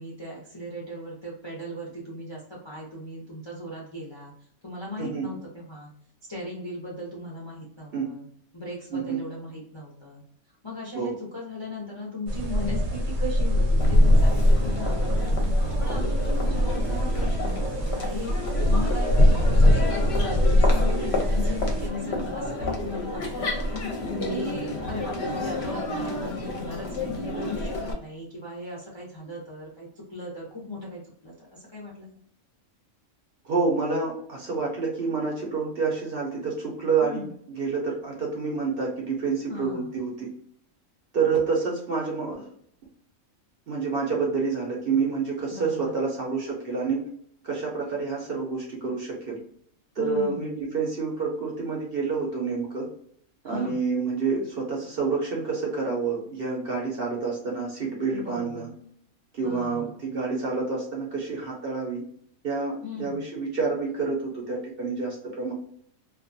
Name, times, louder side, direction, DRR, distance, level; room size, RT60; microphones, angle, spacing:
voice 1, 0.0-4.3 4.6-5.9 6.3-8.3 8.5-10.2 10.6-15.5 15.8-18.3 18.7-23.7 24.0-32.1 37.0-37.3 39.5-39.9 45.5-45.9 50.0-50.5 53.4-53.8 58.1-58.6 59.4-60.0 62.8-63.2, left 1 dB, 35° left, -4 dB, 0.5 m, -38 dB
voice 2, 8.9-9.2 10.9-11.1 33.4-37.2 37.6-40.3 41.1-42.5 43.7-47.1 47.4-49.4 50.0-52.9 53.4-58.7 59.3-62.0 62.4-65.5, right 4 dB, 55° right, -2 dB, 0.7 m, -28 dB
sound 1, 12.3-21.9, left 1 dB, 70° right, 1.1 m, -22 dB
Crowd, 13.8-27.9, left 2 dB, 60° left, 0.8 m, -31 dB
2.5 x 2.3 x 2.5 m, 0.66 s
omnidirectional pair, 1.4 m